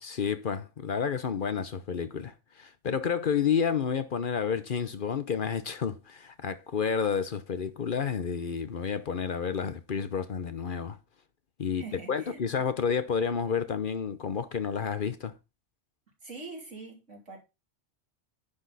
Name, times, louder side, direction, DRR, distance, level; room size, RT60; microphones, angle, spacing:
voice 1, 0.0-11.0 11.6-11.8 12.1-15.3, left 6 dB, 50° left, 0.9 m, -30 dB
voice 2, 11.7-12.7 16.2-17.4, right 3 dB, 90° right, 3.5 m, -44 dB
10.0 x 6.2 x 4.0 m
omnidirectional pair, 1.2 m